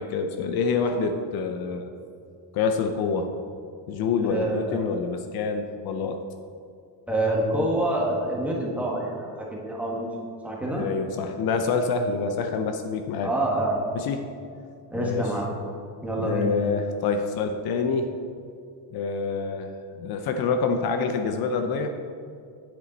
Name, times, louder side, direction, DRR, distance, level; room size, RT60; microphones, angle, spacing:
voice 1, 0.0-1.9 2.5-3.3 3.9-6.2 10.6-13.3 13.9-14.3 14.9-15.3 16.2-18.1 18.9-21.9, left 5 dB, 60° left, 6 dB, 0.7 m, -27 dB
voice 2, 4.2-4.8 7.1-10.1 10.4-10.8 13.2-13.8 14.9-15.5 16.0-16.5, right 1 dB, 5° right, -3 dB, 1.4 m, -26 dB
9.9 x 8.5 x 4.0 m, 2.4 s
cardioid pair, 180°, 42 cm